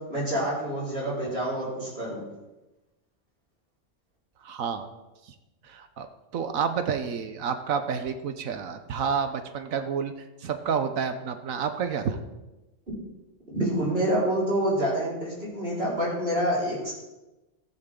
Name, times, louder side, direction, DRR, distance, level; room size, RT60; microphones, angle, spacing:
voice 1, 0.1-2.2 13.5-16.9, right 1 dB, 45° right, -7 dB, 4.9 m, -27 dB
voice 2, 4.4-4.9 5.3-5.4 5.6-6.1 6.3-10.1 10.4-12.2, right 6 dB, 85° right, 8 dB, 1.3 m, -29 dB
15.0 x 14.0 x 3.8 m, 1.1 s
omnidirectional pair, 1.4 m